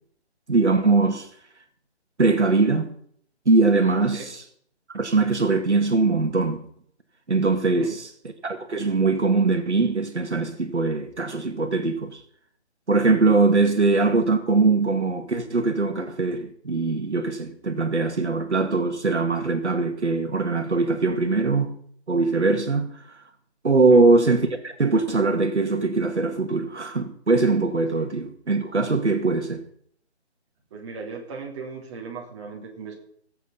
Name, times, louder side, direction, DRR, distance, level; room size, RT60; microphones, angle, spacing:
voice 1, 0.5-1.3 2.2-2.9 3.5-4.4 4.9-6.6 7.3-8.1 8.4-12.2 12.9-21.7 22.1-23.2 23.6-29.6, right 3 dB, 90° right, 2.1 m, -21 dB
voice 2, 7.6-7.9 23.9-24.0 30.7-32.9, right 5 dB, 25° right, 2.9 m, -37 dB
16.0 x 8.2 x 5.6 m
figure-of-eight pair, 155°, 33 cm